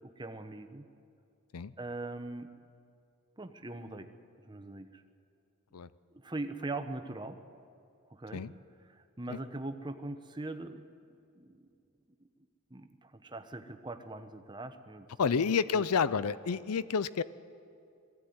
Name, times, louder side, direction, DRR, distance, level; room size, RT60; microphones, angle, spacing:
voice 1, 0.0-0.9 1.8-2.5 3.4-4.1 4.4-5.0 6.1-7.4 8.1-8.4 8.9-10.8 11.4-11.7 12.7-15.4 15.7-15.8, right 2 dB, 20° right, 8 dB, 1.0 m, -41 dB
voice 2, 15.2-17.2, left 6 dB, 85° left, 17 dB, 0.5 m, -29 dB
20.5 x 15.0 x 9.5 m, 2.4 s
head